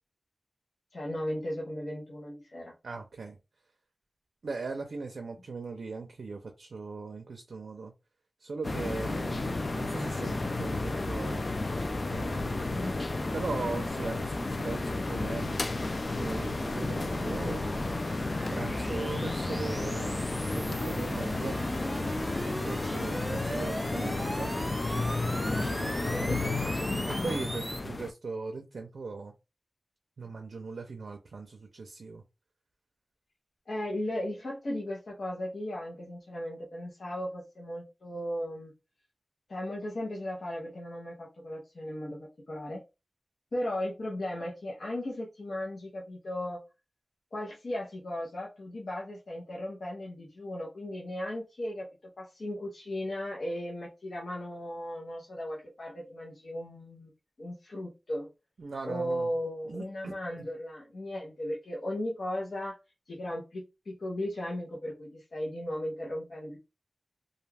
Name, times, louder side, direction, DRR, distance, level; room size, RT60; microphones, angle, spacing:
voice 1, 0.9-2.7 12.7-13.1 23.5-24.1 26.1-26.4 33.7-38.7 39.5-42.8 43.5-46.6 47.3-57.1 57.4-58.3 58.8-62.8 63.1-66.6, left 1 dB, 80° left, 0.7 m, -36 dB
voice 2, 2.8-3.4 4.4-7.9 8.4-11.5 12.1-15.6 16.1-17.7 18.5-20.2 20.5-21.6 22.6-24.5 25.6-26.6 27.1-29.3 30.2-32.2 58.6-59.3 59.7-60.5, right 4 dB, 90° right, 0.4 m, -39 dB
sound 1, 8.6-28.1, left 2 dB, 50° left, 0.3 m, -32 dB
sound 2, 14.9-27.8, right 1 dB, 30° right, 0.4 m, -41 dB
2.4 x 2.3 x 3.2 m
wide cardioid pair, 65°, 0 cm